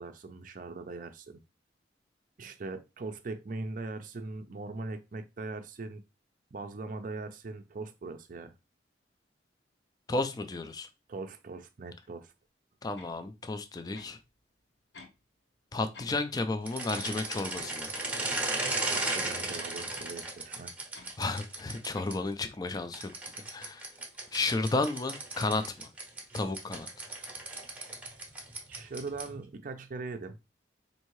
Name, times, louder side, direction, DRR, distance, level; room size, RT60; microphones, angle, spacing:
voice 1, 0.0-1.4 2.4-6.0 6.5-8.5 11.1-12.3 18.9-20.7 28.7-30.4, right 3 dB, 45° right, 0.4 m, -40 dB
voice 2, 10.1-10.9 12.8-14.2 15.7-17.9 21.2-23.1 23.5-23.9 24.3-25.9 26.3-27.1, left 3 dB, 20° left, 0.3 m, -32 dB
sound 1, 13.0-13.2 13.9-14.2 14.9-15.2 15.9-16.2 16.9-17.2 17.9-18.2 18.9-19.1 19.9-20.2 20.9-21.2 21.9-22.2, left 3 dB, 70° left, 0.9 m, -51 dB
sound 2, 16.6-22.1 22.9-29.4, right 2 dB, 10° right, 0.7 m, -36 dB
4.5 x 2.7 x 3.0 m
head